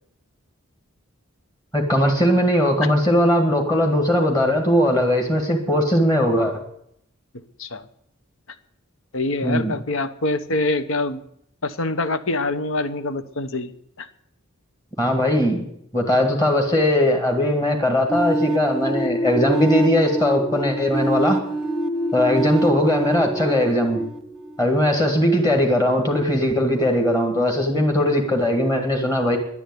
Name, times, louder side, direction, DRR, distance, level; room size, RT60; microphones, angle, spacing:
voice 1, 1.7-6.5 9.4-9.8 15.0-15.7 15.9-21.4 22.1-24.0 24.6-29.4, left 1 dB, 20° left, 3 dB, 2.0 m, -19 dB
voice 2, 9.1-11.2 11.6-13.7 14.0-14.1, left 2 dB, 70° left, 12 dB, 1.1 m, -25 dB
sound 1, 18.1-24.9, right 1 dB, ahead, 1.1 m, -25 dB
11.0 x 10.0 x 9.6 m, 0.71 s
head